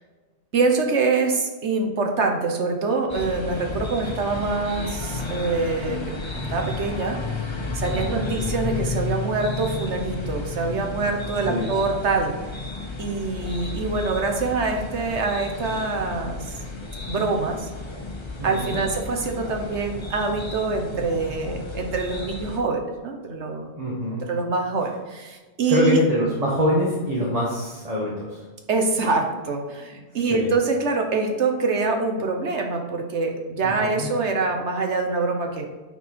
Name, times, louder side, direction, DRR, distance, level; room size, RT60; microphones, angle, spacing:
voice 1, 0.5-6.0 6.3-7.2 7.7-12.3 13.0-16.5 17.1-17.7 18.4-23.7 24.3-26.0 28.7-35.7, right 3 dB, 80° right, 3 dB, 1.4 m, -25 dB
sound 1, 3.1-22.6, left 2 dB, 25° left, 1.1 m, -32 dB
voice 2, 7.9-8.3 11.4-11.7 18.4-18.8 23.8-24.2 25.7-28.4 30.1-30.5 33.6-34.1, left 1 dB, 35° right, -5 dB, 1.6 m, -25 dB
9.4 x 4.5 x 4.7 m, 1.3 s
omnidirectional pair, 1.2 m